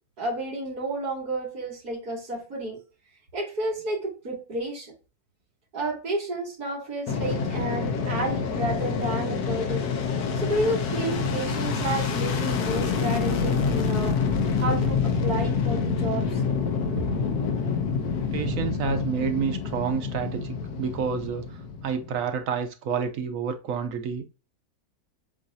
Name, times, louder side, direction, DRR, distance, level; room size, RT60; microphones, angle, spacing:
voice 1, 0.2-2.8 3.3-4.9 5.7-9.8 10.4-14.2 14.6-16.4 16.9-17.2, right 1 dB, 90° right, 2.6 m, -31 dB
Fixed-wing aircraft airplane, 7.1-22.2, left 5 dB, 85° left, 1.4 m, -27 dB
voice 2, 18.3-24.2, right 7 dB, 65° right, 0.9 m, -29 dB
7.4 x 2.6 x 2.7 m
omnidirectional pair, 1.6 m